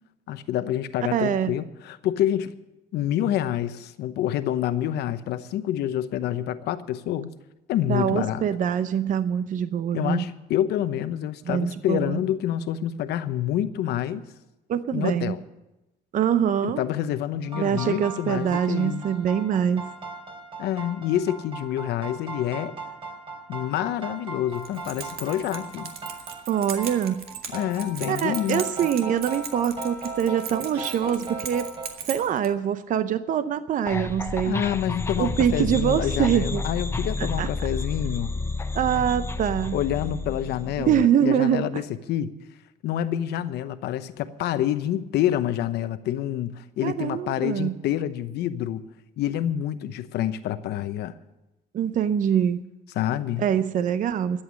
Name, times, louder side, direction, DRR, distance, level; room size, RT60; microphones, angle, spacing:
voice 1, 0.3-2.5 2.9-7.3 7.7-8.4 9.9-14.2 14.9-15.4 16.6-19.0 20.6-22.7 23.5-25.9 27.5-28.6 34.4-38.3 39.7-41.8 42.1-42.3 42.8-48.8 49.2-51.1 53.0-53.5, left 11 dB, 75° left, 12 dB, 0.9 m, -27 dB
voice 2, 1.1-1.5 7.9-10.3 11.4-12.2 14.7-15.4 16.1-16.8 17.5-19.9 26.5-27.2 28.1-31.7 32.0-34.6 35.2-36.6 37.4-37.5 38.7-39.8 40.8-41.8 46.8-47.8 51.7-52.6 53.4-54.4, right 9 dB, 50° right, 12 dB, 0.7 m, -24 dB
sound 1, 17.5-31.9, right 2 dB, 35° right, 3.1 m, -38 dB
Keys jangling, 24.5-32.5, right 7 dB, 65° right, 1.8 m, -38 dB
sound 2, 33.9-41.0, left 3 dB, 15° left, 0.8 m, -30 dB
13.0 x 8.1 x 10.0 m, 0.96 s
cardioid pair, 110°, 17 cm